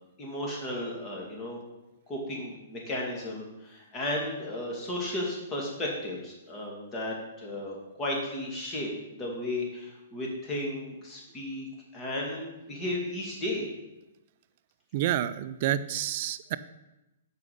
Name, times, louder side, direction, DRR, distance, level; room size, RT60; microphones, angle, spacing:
voice 1, 0.2-1.6 2.1-11.7 11.9-13.6, left 1 dB, 20° left, -2 dB, 2.2 m, -34 dB
voice 2, 14.9-16.6, right 12 dB, 50° right, 14 dB, 0.4 m, -29 dB
6.7 x 4.9 x 5.1 m, 0.98 s
hypercardioid pair, 130°, 0 cm